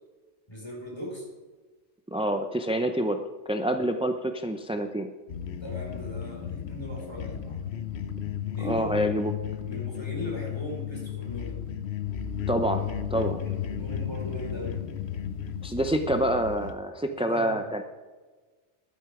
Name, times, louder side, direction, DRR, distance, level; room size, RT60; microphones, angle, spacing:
voice 1, 0.5-1.2 3.8-3.9 5.6-7.7 8.5-9.0 9.6-11.6 13.4-14.8 17.2-17.7, equal, 20° left, -2 dB, 4.2 m, -39 dB
voice 2, 2.1-3.2 3.5-5.1 8.6-9.3 12.5-13.4 15.6-17.8, right 1 dB, 10° right, 6 dB, 0.4 m, -27 dB
sound 1, 5.3-16.7, left 9 dB, 65° left, 1.0 m, -34 dB
14.0 x 11.5 x 4.9 m, 1.3 s
omnidirectional pair, 1.2 m